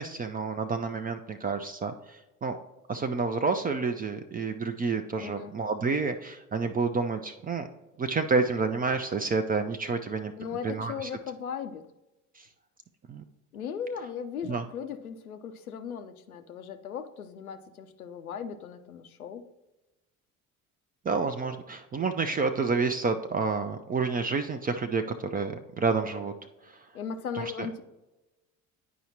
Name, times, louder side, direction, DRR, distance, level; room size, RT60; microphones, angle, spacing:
voice 1, 0.0-1.9 2.4-2.6 2.9-7.7 8.0-10.3 10.6-10.9 13.1-13.2 14.5-14.6 21.1-26.3 27.4-27.5, right 4 dB, 20° right, 7 dB, 0.4 m, -29 dB
voice 2, 5.2-5.5 10.4-11.9 13.5-19.4 26.9-27.8, left 7 dB, 90° left, 10 dB, 0.6 m, -37 dB
10.0 x 4.9 x 2.8 m, 1.0 s
figure-of-eight pair, 60°, 42 cm